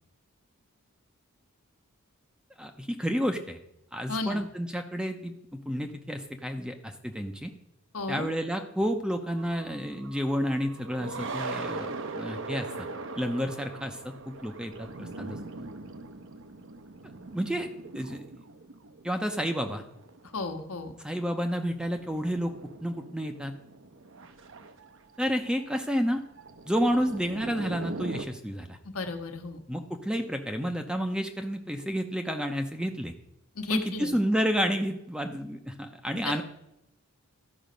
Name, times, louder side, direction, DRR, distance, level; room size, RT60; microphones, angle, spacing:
voice 1, 2.6-3.6 3.9-7.5 8.1-12.9 13.2-15.4 17.3-17.7 17.9-18.2 19.0-19.8 21.0-22.5 22.8-23.5 25.2-26.2 26.6-28.8 29.7-33.1 33.7-36.4, equal, 5° right, 6 dB, 0.6 m, -30 dB
voice 2, 4.1-4.4 7.9-8.3 20.3-20.9 28.9-29.6 33.6-34.1 36.2-36.3, left 3 dB, 70° left, 4 dB, 1.3 m, -33 dB
sound 1, 9.4-20.6 20.9-21.0 21.3-21.4 21.6-28.2, right 3 dB, 60° right, 0.8 m, -41 dB
13.0 x 5.6 x 5.1 m, 0.84 s
head